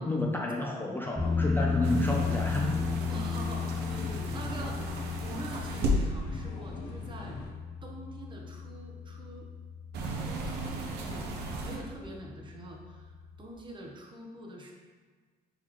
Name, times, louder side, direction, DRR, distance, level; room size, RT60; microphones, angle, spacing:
voice 1, 0.0-2.7, left 1 dB, 10° left, -1 dB, 0.3 m, -31 dB
sound 1, 1.2-7.5, left 3 dB, 75° left, 0.7 m, -42 dB
sound 2, 1.2-13.5, left 5 dB, 10° right, 1.1 m, -35 dB
sound 3, 1.8-5.9 9.9-11.8, right 2 dB, 80° right, 0.7 m, -36 dB
voice 2, 3.1-4.9 5.2-7.4 7.8-9.5 10.3-11.3 11.6-14.7, right 1 dB, 30° right, 0 dB, 0.8 m, -44 dB
4.4 x 4.0 x 3.0 m, 1.5 s
cardioid pair, 110°, 17 cm